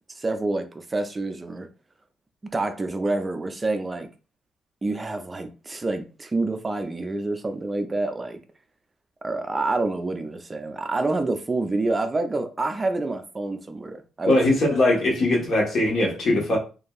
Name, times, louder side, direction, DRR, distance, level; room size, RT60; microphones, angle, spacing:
voice 1, 0.2-1.7 2.5-4.1 4.8-8.4 9.2-14.4, right 2 dB, 25° right, 0.4 m, -27 dB
voice 2, 14.3-16.6, left 1 dB, 55° left, 1.2 m, -20 dB
2.9 x 2.6 x 2.3 m
cardioid pair, 90°, 0 cm